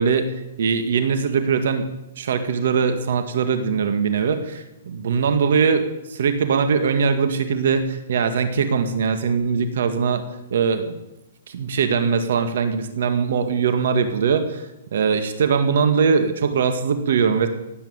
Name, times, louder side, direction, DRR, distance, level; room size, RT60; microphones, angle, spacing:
voice 1, 0.0-1.9 2.2-10.2 10.5-11.0 11.5-17.5, right 6 dB, 65° right, 8 dB, 1.9 m, -21 dB
17.5 x 9.1 x 8.9 m, 0.92 s
hypercardioid pair, 160°, 0 cm